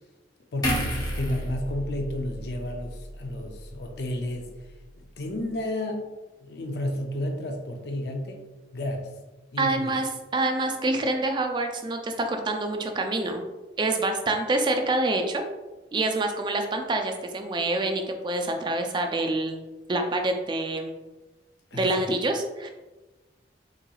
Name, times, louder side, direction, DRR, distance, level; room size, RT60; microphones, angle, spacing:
voice 1, 0.5-4.5 5.0-6.1 6.4-8.4 8.7-9.1 9.5-10.0 21.7-22.0, left 1 dB, 65° left, 3 dB, 0.5 m, -32 dB
sound 1, 0.6-4.0 4.3-4.5, equal, 20° left, 0.6 m, -32 dB
voice 2, 9.6-13.4 13.8-15.4 15.9-19.6 19.9-20.9 21.7-22.7, right 2 dB, 25° right, 4 dB, 0.3 m, -26 dB
3.8 x 3.0 x 2.3 m, 1.1 s
head